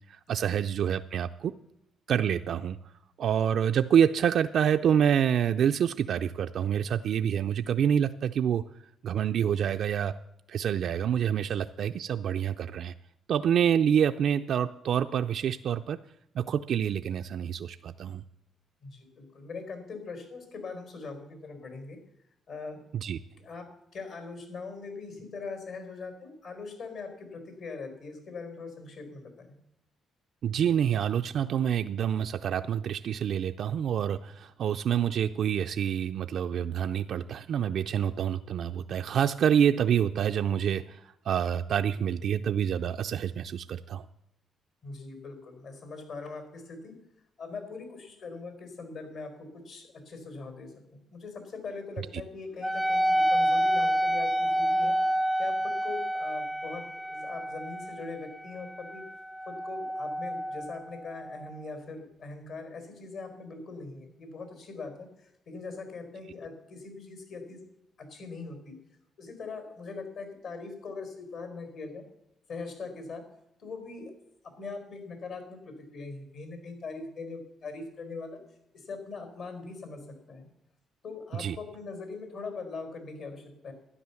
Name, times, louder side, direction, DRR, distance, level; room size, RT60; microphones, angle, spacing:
voice 1, 0.1-1.5 2.1-2.9 3.2-8.6 9.0-10.1 10.5-12.9 13.3-16.0 16.3-18.2 22.9-23.2 30.4-44.0 81.4-81.6, right 9 dB, 65° right, 7 dB, 0.4 m, -27 dB
voice 2, 18.8-22.0 22.5-22.8 23.4-23.7 23.9-29.5 44.8-46.9 47.4-54.9 55.4-59.0 59.5-67.6 68.0-68.8 69.2-72.0 72.5-73.2 73.6-74.1 74.6-78.4 78.7-80.5 81.0-83.7, left 4 dB, 70° left, 6 dB, 4.4 m, -41 dB
Wind instrument woodwind instrument, 52.6-61.6, equal, ahead, 0.4 m, -29 dB
12.5 x 10.0 x 7.1 m, 0.82 s
cardioid pair, 90°, 0 cm